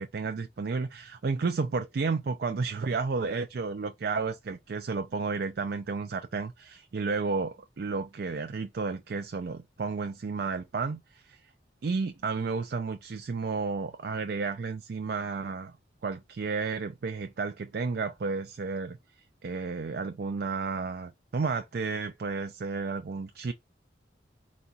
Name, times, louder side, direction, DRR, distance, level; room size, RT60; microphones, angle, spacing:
voice 1, 0.0-11.4 11.8-15.7 16.0-19.0 19.4-23.5, right 4 dB, 55° right, 0.4 m, -32 dB
4.1 x 2.3 x 3.9 m
head